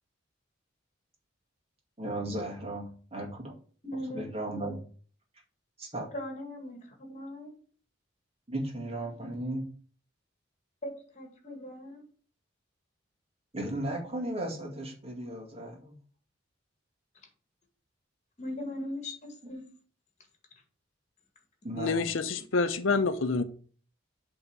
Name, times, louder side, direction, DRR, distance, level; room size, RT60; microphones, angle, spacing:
voice 1, 2.0-3.5 4.1-4.8 5.8-6.1 8.5-9.6 13.5-15.9 21.6-22.1, right 1 dB, 30° right, 2.0 m, -35 dB
voice 2, 3.8-4.3 6.1-7.5 10.8-12.0 18.4-19.6, left 1 dB, 35° left, 2.1 m, -39 dB
voice 3, 21.8-23.4, left 4 dB, 80° left, 0.7 m, -27 dB
8.0 x 3.7 x 6.0 m
head